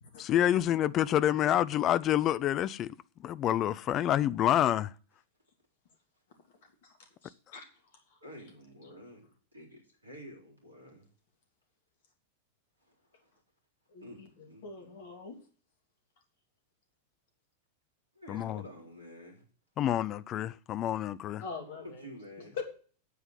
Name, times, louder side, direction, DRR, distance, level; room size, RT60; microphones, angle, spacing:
voice 1, 0.2-3.0 3.2-4.9 18.3-18.6 19.8-21.4, left 11 dB, 30° left, 0.5 m, -27 dB
voice 2, 7.2-7.7 13.9-15.4 21.4-22.0 22.6-22.7, left 5 dB, 55° left, 2.9 m, -43 dB
voice 3, 8.2-11.1 12.8-13.3 14.0-15.0 18.1-19.4 21.3-22.6, equal, 80° right, 3.9 m, -50 dB
9.3 x 8.1 x 7.4 m
figure-of-eight pair, 90°, 0 cm